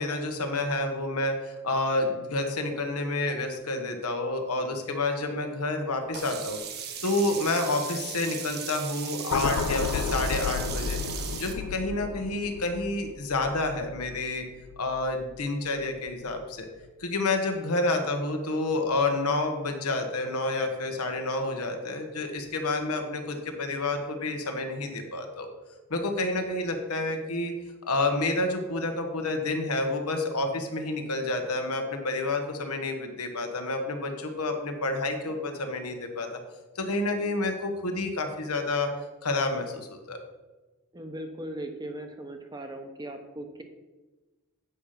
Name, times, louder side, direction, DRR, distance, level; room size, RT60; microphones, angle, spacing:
voice 1, 0.0-6.6 7.0-11.0 11.4-14.4 14.8-16.7 17.0-25.5 25.9-27.5 27.9-36.3 36.7-38.9 39.2-40.2, left 2 dB, 85° left, 5 dB, 1.3 m, -29 dB
Sink (filling or washing), 6.1-11.5, right 7 dB, 45° right, 0.9 m, -37 dB
sound 1, 9.3-15.6 16.0-16.2, left 5 dB, 65° left, 0.4 m, -33 dB
voice 2, 40.9-43.6, right 1 dB, 20° right, 5 dB, 0.8 m, -38 dB
8.1 x 5.1 x 5.8 m, 1.2 s
head